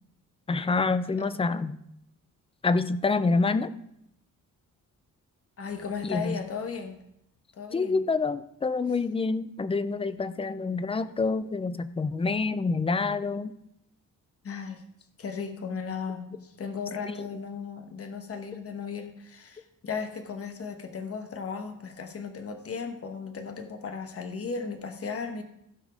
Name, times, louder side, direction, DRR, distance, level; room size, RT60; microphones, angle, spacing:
voice 1, 0.5-1.8 2.6-3.7 6.0-6.4 7.7-13.5 17.0-17.3, left 4 dB, 20° left, 13 dB, 0.3 m, -27 dB
voice 2, 5.6-7.0 7.5-8.0 11.2-11.4 14.4-14.8 15.2-25.4, left 5 dB, 45° left, 6 dB, 1.1 m, -36 dB
16.0 x 5.3 x 5.1 m, 0.78 s
wide cardioid pair, 165°, 33 cm